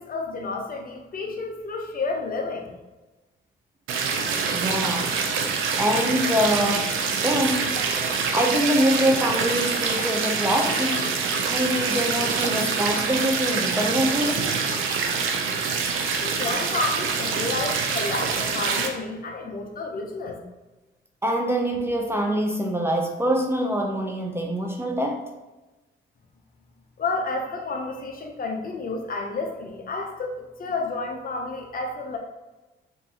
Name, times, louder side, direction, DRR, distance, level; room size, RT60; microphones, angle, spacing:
voice 1, 0.0-2.7 16.2-20.4 27.0-32.2, left 3 dB, 45° left, 3 dB, 0.7 m, -30 dB
sound 1, 3.9-18.9, right 5 dB, 85° right, 0.5 m, -25 dB
voice 2, 4.5-5.2 5.8-7.8 8.3-11.1 11.5-14.5 21.2-25.3, equal, 10° right, 2 dB, 0.5 m, -24 dB
5.3 x 2.6 x 2.8 m, 1.1 s
cardioid pair, 90°, 20 cm